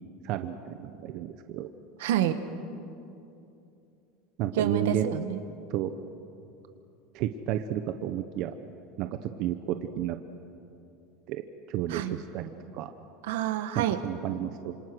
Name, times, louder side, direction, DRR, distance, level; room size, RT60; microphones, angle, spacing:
voice 1, 0.2-1.7 4.4-5.1 5.7-5.9 7.1-8.5 9.0-10.2 11.3-12.9 13.7-14.7, right 11 dB, 55° right, 8 dB, 1.0 m, -32 dB
voice 2, 2.0-2.4 4.5-5.4 11.9-12.2 13.2-14.0, right 10 dB, 85° right, 9 dB, 1.6 m, -28 dB
28.0 x 26.5 x 6.3 m, 2.7 s
supercardioid pair, 145°, 0 cm